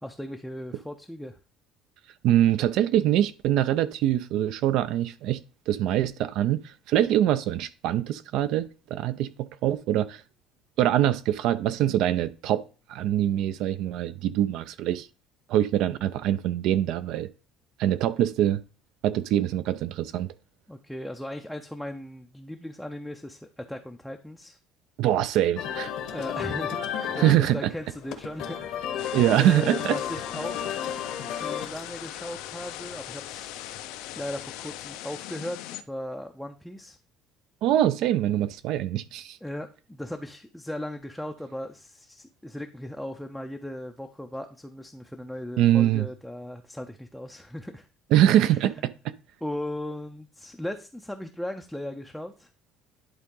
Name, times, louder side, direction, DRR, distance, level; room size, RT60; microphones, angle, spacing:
voice 1, 0.0-1.4 20.7-24.6 26.1-30.9 31.4-33.8 34.2-35.6 35.9-37.0 39.4-47.9 48.4-48.6 49.4-52.5, left 1 dB, ahead, 0.4 m, -37 dB
voice 2, 2.2-5.4 5.7-10.2 10.8-12.6 12.9-15.1 15.5-17.3 17.8-18.6 19.0-20.3 25.0-25.9 27.2-27.7 29.1-30.0 37.6-39.4 45.6-46.0 48.1-49.1, right 12 dB, 60° right, 0.4 m, -24 dB
sound 1, 25.5-34.9, left 8 dB, 60° left, 1.0 m, -34 dB
sound 2, 29.0-35.8, left 13 dB, 85° left, 0.6 m, -40 dB
11.0 x 3.7 x 3.7 m
cardioid pair, 160°, 0 cm